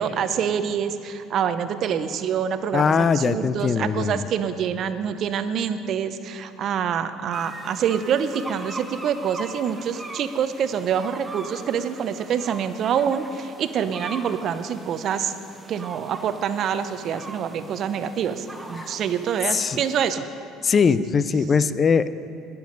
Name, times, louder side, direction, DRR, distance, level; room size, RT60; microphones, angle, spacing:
voice 1, 0.0-15.3 15.7-20.2, right 8 dB, 55° right, 11 dB, 0.7 m, -26 dB
voice 2, 2.7-4.2 18.8-18.9 19.5-19.8 20.6-22.1, left 5 dB, 35° left, 15 dB, 0.5 m, -21 dB
sound 1, 7.3-20.1, right 2 dB, 15° right, 1.2 m, -41 dB
19.5 x 7.1 x 5.3 m, 2.7 s
hypercardioid pair, 70°, 0 cm